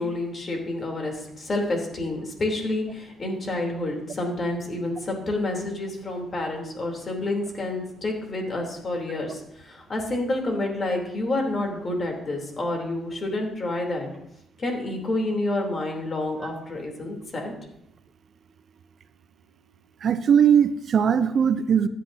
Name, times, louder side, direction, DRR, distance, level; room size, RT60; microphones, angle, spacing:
voice 1, 0.0-14.1 14.6-17.5, left 2 dB, 40° left, 1 dB, 3.2 m, -29 dB
voice 2, 20.0-21.9, right 8 dB, 55° right, 11 dB, 0.6 m, -19 dB
16.0 x 10.5 x 2.7 m, 0.78 s
cardioid pair, 90°, 0 cm